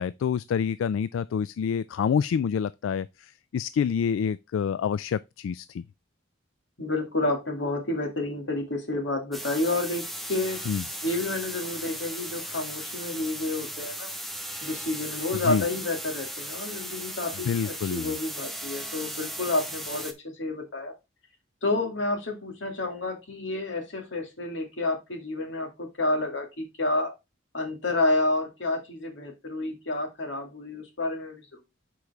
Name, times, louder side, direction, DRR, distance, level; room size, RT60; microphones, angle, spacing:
voice 1, 0.0-5.8 10.7-10.8 15.3-15.6 17.5-18.1, left 7 dB, 85° left, 0.3 m, -27 dB
voice 2, 6.8-10.7 11.0-14.1 14.6-20.9 21.6-27.1 27.5-31.6, left 2 dB, 65° left, 2.1 m, -30 dB
sound 1, 9.3-20.1, right 1 dB, ahead, 0.8 m, -37 dB
6.9 x 4.7 x 4.1 m
head